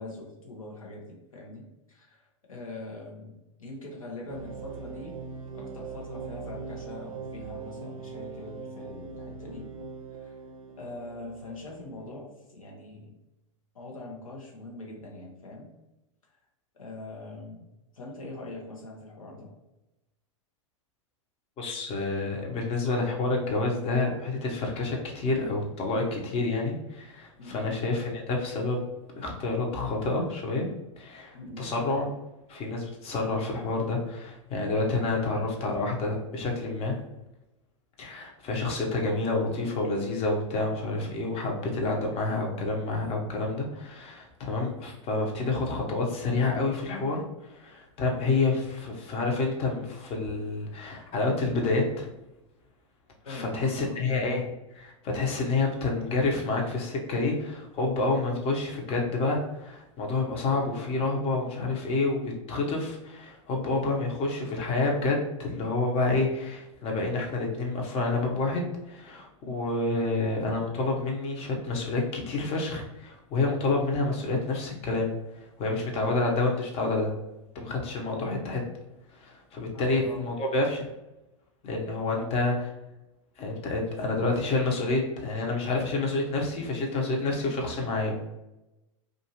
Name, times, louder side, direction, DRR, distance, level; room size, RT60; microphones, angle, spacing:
voice 1, 0.0-5.1 5.5-9.7 10.1-10.4 10.8-13.1 13.7-15.7 16.3-16.4 16.7-17.7 17.9-19.5 27.4-27.7 31.3-31.7 53.2-54.1 79.7-80.2 82.1-82.3, left 2 dB, 85° left, -1 dB, 0.9 m, -42 dB
sound 1, 4.3-12.2, right 5 dB, 85° right, 0.4 m, -41 dB
voice 2, 21.6-28.9 29.2-30.7 31.0-32.1 32.5-37.0 38.0-47.2 47.5-52.1 53.3-75.1 75.6-77.1 77.5-78.6 79.1-80.9 81.6-82.5 83.4-88.1, left 3 dB, 35° left, 0 dB, 0.9 m, -28 dB
2.7 x 2.5 x 2.9 m, 0.95 s
hypercardioid pair, 95°, 17 cm